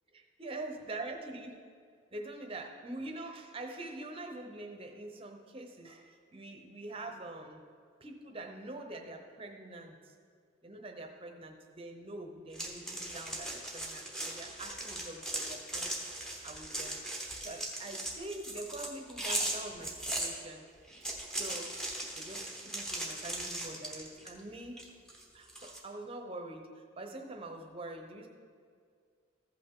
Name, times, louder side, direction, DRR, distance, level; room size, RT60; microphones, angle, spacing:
voice 1, 0.1-1.6 2.1-7.7 8.0-10.1 10.6-16.1 16.4-17.0 17.4-20.6 21.3-21.8 22.1-24.9 25.3-28.3, right 2 dB, 25° right, 3 dB, 0.8 m, -45 dB
sound 1, 12.5-20.3 20.9-24.4 24.8-25.8, right 1 dB, 5° left, 0.9 m, -38 dB
14.5 x 5.6 x 3.7 m, 2.1 s
head